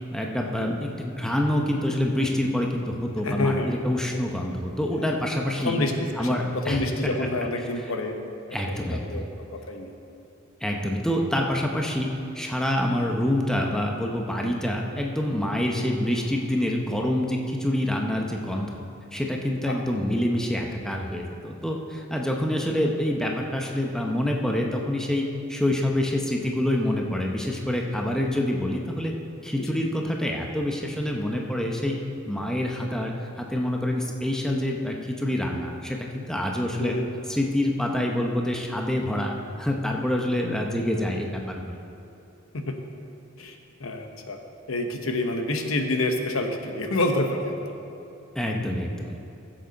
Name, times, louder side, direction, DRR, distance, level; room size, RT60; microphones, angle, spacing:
voice 1, 0.1-5.8 6.2-6.8 8.5-9.2 10.6-12.1 12.3-18.8 19.1-29.1 29.4-32.0 32.3-37.0 37.3-41.8 48.3-49.2, left 1 dB, 5° left, 0 dB, 0.7 m, -26 dB
voice 2, 3.2-3.8 4.9-5.2 5.6-8.2 8.7-9.9 15.7-15.9 19.7-19.8 29.6-29.8 36.8-37.1 42.7-42.8 43.4-44.4 44.7-47.7, left 2 dB, 70° left, 4 dB, 1.0 m, -28 dB
15.0 x 7.7 x 4.0 m, 2.8 s
head